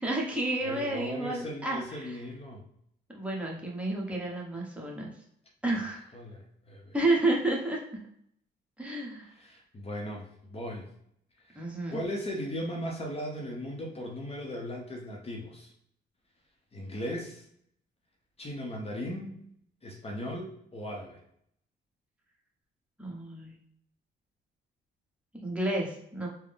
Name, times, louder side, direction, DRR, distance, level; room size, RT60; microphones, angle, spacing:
voice 1, 0.0-2.0 3.1-5.1 5.6-6.0 6.9-7.8 8.8-9.3 11.5-12.0 23.0-23.5 25.4-26.3, right 2 dB, 5° right, -3 dB, 1.2 m, -30 dB
voice 2, 0.6-2.7 5.7-5.8 6.1-7.0 9.3-10.9 11.5-15.7 16.7-17.4 18.4-19.4 19.8-21.2, equal, 30° left, 0 dB, 0.8 m, -38 dB
3.7 x 2.2 x 3.6 m, 0.70 s
cardioid pair, 90°, 20 cm